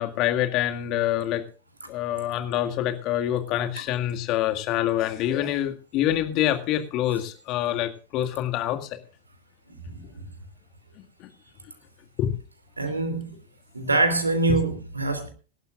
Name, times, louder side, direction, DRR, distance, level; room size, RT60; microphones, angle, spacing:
voice 1, 0.0-1.4 1.9-9.0 11.2-11.3 12.2-12.3, left 12 dB, 40° left, 6 dB, 1.9 m, -26 dB
voice 2, 9.7-10.2 12.8-13.3 13.7-15.3, right 2 dB, 80° right, 10 dB, 3.0 m, -25 dB
25.0 x 12.0 x 2.5 m, 0.36 s
figure-of-eight pair, 90°, 0 cm